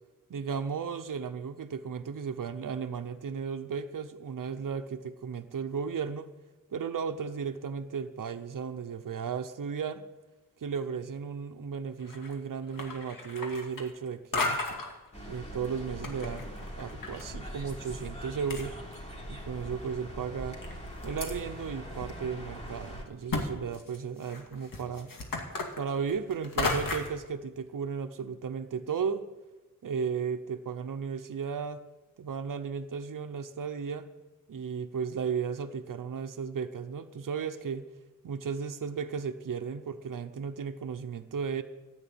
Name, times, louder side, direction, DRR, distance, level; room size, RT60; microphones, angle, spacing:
voice 1, 0.3-6.3 6.7-10.0 10.6-14.6 15.3-18.8 19.3-20.6 21.0-25.1 25.8-29.3 29.8-31.8 32.2-34.1 34.5-37.8 38.2-41.6, right 6 dB, 80° right, 7 dB, 0.9 m, -35 dB
sound 1, 12.0-12.4 12.7-14.1 14.3-14.9 15.6-17.2 17.5-17.6 18.2-18.3 18.5-19.3 19.8-19.9 20.6-21.3 22.0-22.1 22.5-22.6 23.3-23.4 23.7-27.2, left 3 dB, 85° left, 2.5 m, -34 dB
sound 2, 15.1-23.0, equal, 20° left, 3.4 m, -42 dB
14.0 x 9.0 x 9.0 m, 1.1 s
wide cardioid pair, 125°, 32 cm